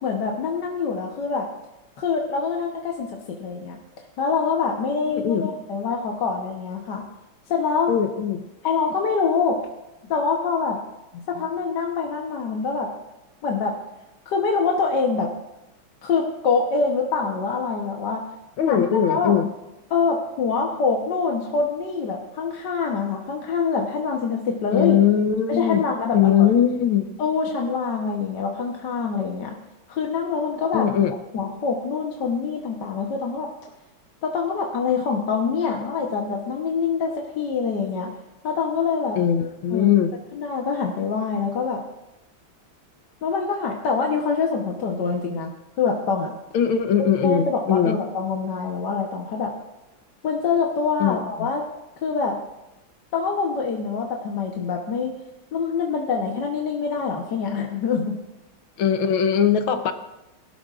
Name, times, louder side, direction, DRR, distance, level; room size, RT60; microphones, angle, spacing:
voice 1, 0.0-1.5 2.0-3.8 4.2-7.1 7.5-7.9 8.6-9.6 10.1-10.8 11.3-12.9 13.4-13.7 14.3-15.3 16.0-18.2 18.7-19.3 19.9-25.0 25.5-26.5 27.2-29.6 29.9-31.0 31.3-33.5 34.2-38.1 38.4-39.2 39.7-40.0 40.3-41.8 43.2-46.3 47.0-49.5 50.2-51.6 52.0-52.4 53.1-55.1 55.5-58.2, left 5 dB, 60° left, 0 dB, 1.6 m, -25 dB
voice 2, 5.1-5.5 7.9-8.4 11.2-11.3 18.6-19.5 24.7-25.8 26.1-27.1 30.7-31.1 39.2-40.1 46.5-48.0 51.0-51.5 58.8-59.9, left 9 dB, 80° left, 8 dB, 1.6 m, -20 dB
23.0 x 12.5 x 2.5 m, 0.95 s
omnidirectional pair, 2.3 m